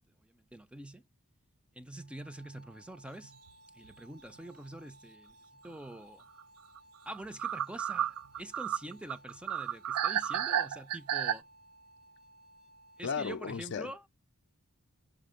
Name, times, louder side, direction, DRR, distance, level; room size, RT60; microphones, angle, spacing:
voice 1, 0.2-1.0 1.7-3.3 3.7-6.3 7.1-11.4 13.0-14.0, right 1 dB, 5° right, 0.5 m, -46 dB
sound 1, 2.0-13.2, right 1 dB, 50° right, 0.9 m, -60 dB
sound 2, 3.2-3.5 3.8-3.9 6.4-6.5 6.8-6.9 7.1-11.4, right 10 dB, 80° right, 0.4 m, -32 dB
voice 2, 13.0-14.1, left 6 dB, 55° left, 0.4 m, -36 dB
6.1 x 5.0 x 5.1 m
head